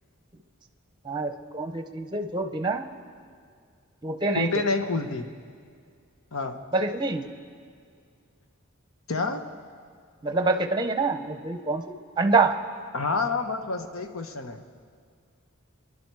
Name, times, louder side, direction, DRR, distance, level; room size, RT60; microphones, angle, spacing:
voice 1, 1.0-2.8 4.0-4.5 6.7-7.2 10.2-11.8 12.2-12.6, right 3 dB, 20° right, 8 dB, 0.8 m, -25 dB
voice 2, 4.4-5.2 6.3-6.6 9.1-9.4 12.9-14.6, left 3 dB, 75° left, 6 dB, 1.1 m, -28 dB
24.5 x 11.0 x 4.8 m, 2.2 s
head